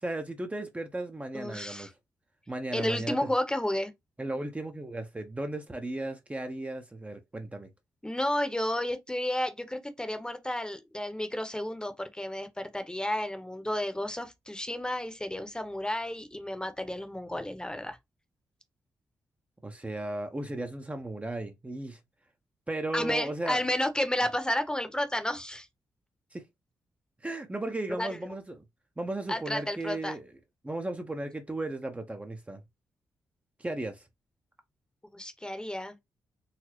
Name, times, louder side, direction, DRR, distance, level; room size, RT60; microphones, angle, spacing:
voice 1, 0.0-1.9 2.5-3.3 4.2-7.7 19.6-22.0 22.7-23.6 26.3-26.4 27.2-28.6 29.0-30.3 30.6-32.6 33.6-34.1, right 2 dB, 20° right, 0.7 m, -35 dB
voice 2, 1.3-1.9 2.7-3.9 8.0-18.0 22.9-25.7 27.9-28.1 29.3-30.2 35.1-36.0, left 1 dB, 10° left, 0.9 m, -32 dB
4.0 x 2.0 x 2.9 m
supercardioid pair, 45°, 7 cm